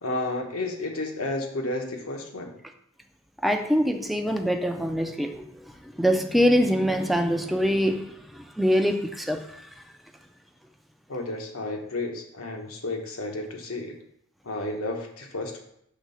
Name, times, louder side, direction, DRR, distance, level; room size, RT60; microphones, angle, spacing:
voice 1, 0.0-2.5 11.1-14.0 14.4-15.6, left 2 dB, 80° left, 2 dB, 1.2 m, -32 dB
voice 2, 3.4-9.7, equal, ahead, 4 dB, 0.5 m, -24 dB
6.1 x 3.6 x 5.6 m, 0.74 s
head